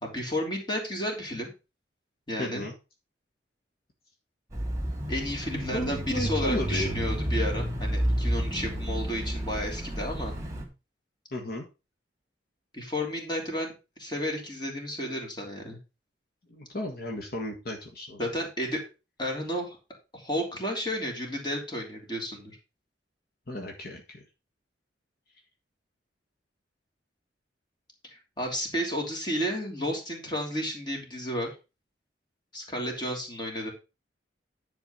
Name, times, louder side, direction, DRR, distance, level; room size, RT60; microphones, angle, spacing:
voice 1, 0.0-1.5 2.3-2.7 5.1-10.3 12.7-13.7 14.0-15.8 18.2-18.8 19.2-19.8 20.1-22.5 28.1-31.5 32.5-33.7, equal, 25° left, 0 dB, 3.2 m, -32 dB
voice 2, 2.4-2.7 5.7-7.0 11.3-11.6 16.5-18.3 23.5-24.2, left 1 dB, 55° left, 2 dB, 1.7 m, -34 dB
Bicycle / Mechanisms, 4.5-10.7, equal, 15° right, 2.4 m, -30 dB
10.5 x 4.6 x 5.6 m, 0.29 s
head